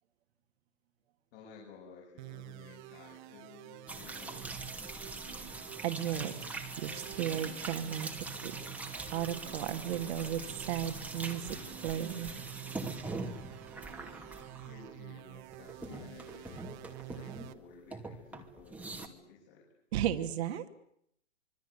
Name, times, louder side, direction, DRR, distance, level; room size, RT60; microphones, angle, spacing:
voice 1, 1.3-4.9 14.5-19.6, left 5 dB, 45° left, -2 dB, 7.7 m, -54 dB
sound 1, 2.2-17.5, right 19 dB, 35° right, 1.5 m, -49 dB
sound 2, 3.9-15.2 15.5-17.6 17.9-19.1, right 3 dB, 5° right, 2.5 m, -43 dB
voice 2, 5.8-6.3 6.8-8.1 8.4-8.5 8.8-11.6 11.8-12.3 19.9-20.7, right 11 dB, 55° right, 7 dB, 2.5 m, -35 dB
26.0 x 24.0 x 8.3 m, 0.72 s
hypercardioid pair, 135°, 39 cm